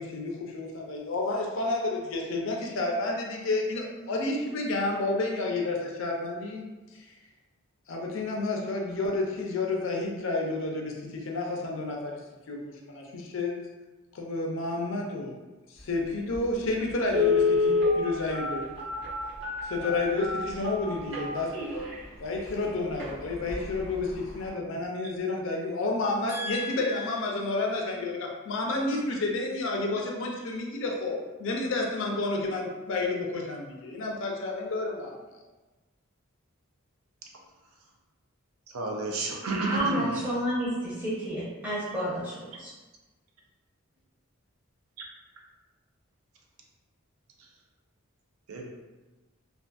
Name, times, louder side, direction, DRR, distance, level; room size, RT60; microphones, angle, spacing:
voice 1, 0.0-6.6 6.9-7.1 7.9-12.2 12.5-12.6 12.9-13.5 14.1-15.4 15.7-18.7 19.7-21.5 22.2-35.2, left 2 dB, 65° left, 0 dB, 0.4 m, -30 dB
Telephone, 16.3-16.4 17.1-21.9 22.5-22.6 22.9-23.1 23.5-23.8 24.1-24.2, left 4 dB, 60° right, 1.0 m, -27 dB
voice 2, 26.3-26.9 39.6-42.7, equal, 10° right, -9 dB, 0.8 m, -31 dB
voice 3, 38.7-40.3 47.4-47.5 48.5-48.7, right 3 dB, 85° right, 0 dB, 0.5 m, -31 dB
2.5 x 2.4 x 2.3 m, 1.2 s
head